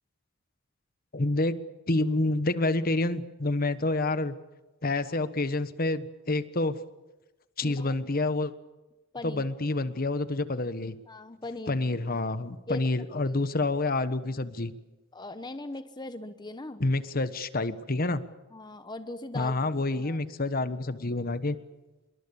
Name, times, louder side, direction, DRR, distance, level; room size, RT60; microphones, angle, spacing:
voice 1, 1.1-1.6 1.9-4.4 4.8-6.8 7.6-8.5 9.2-11.0 11.7-14.7 16.8-18.2 19.3-21.6, left 2 dB, 45° left, 12 dB, 1.2 m, -28 dB
voice 2, 7.6-8.0 9.1-9.5 11.1-11.8 12.7-12.8 13.1-13.4 15.1-16.8 18.5-20.2, left 2 dB, 20° left, 10 dB, 0.9 m, -40 dB
26.5 x 23.0 x 7.0 m, 1.1 s
head